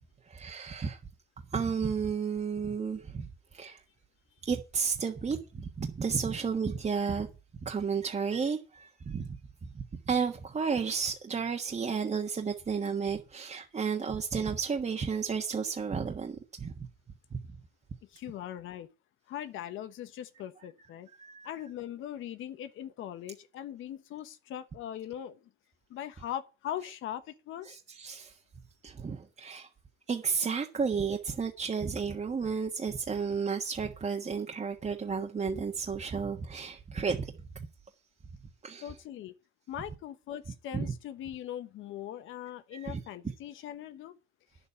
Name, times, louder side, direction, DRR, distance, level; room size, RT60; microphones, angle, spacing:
voice 1, 0.3-1.0 1.5-3.8 4.4-7.3 7.6-9.4 9.6-9.7 10.1-16.9 21.1-21.5 27.7-28.4 28.8-29.7 30.1-37.7 38.6-38.9 40.7-40.9 42.7-43.3, right 5 dB, 35° right, 1.5 m, -32 dB
voice 2, 18.1-18.9 19.3-21.1 21.4-25.4 25.9-27.8 38.8-39.3 39.7-44.1, left 11 dB, 85° left, 1.2 m, -40 dB
10.0 x 7.2 x 8.6 m
cardioid pair, 90°, 20 cm